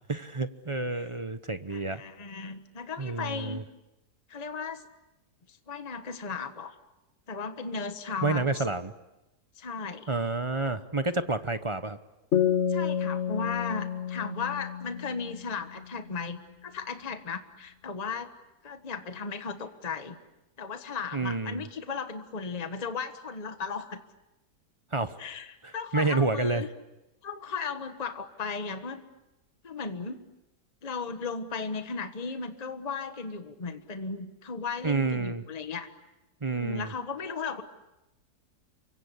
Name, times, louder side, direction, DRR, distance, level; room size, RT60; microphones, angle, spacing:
voice 1, 0.1-2.0 3.0-3.6 8.2-8.9 10.1-12.0 21.1-21.6 24.9-25.2 25.6-26.6 34.8-35.4 36.4-36.9, right 3 dB, 25° right, 11 dB, 0.7 m, -29 dB
voice 2, 1.7-3.6 4.3-4.8 5.5-6.7 7.3-8.6 9.6-10.1 12.7-18.3 18.6-20.2 20.6-24.0 25.2-26.7 27.2-29.0 29.6-30.2 30.8-35.9 36.5-37.6, left 5 dB, 25° left, 8 dB, 1.4 m, -36 dB
sound 1, 12.3-15.8, left 8 dB, 45° left, 1.7 m, -29 dB
28.5 x 24.5 x 8.4 m, 0.98 s
omnidirectional pair, 1.8 m